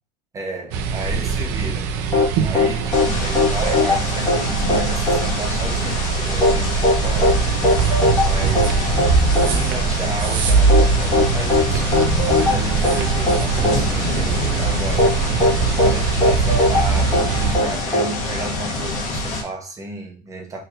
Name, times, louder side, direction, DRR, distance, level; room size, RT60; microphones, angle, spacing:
voice 1, 0.3-1.9 2.4-11.9 12.3-15.1 15.8-20.6, right 2 dB, 15° right, 0.9 m, -32 dB
sound 1, 0.7-17.6, right 5 dB, 55° right, 0.6 m, -21 dB
sound 2, 2.1-19.0, left 2 dB, 20° left, 1.4 m, -21 dB
sound 3, 2.9-19.4, left 2 dB, 40° left, 1.2 m, -27 dB
4.1 x 3.3 x 2.5 m
supercardioid pair, 145°, 20 cm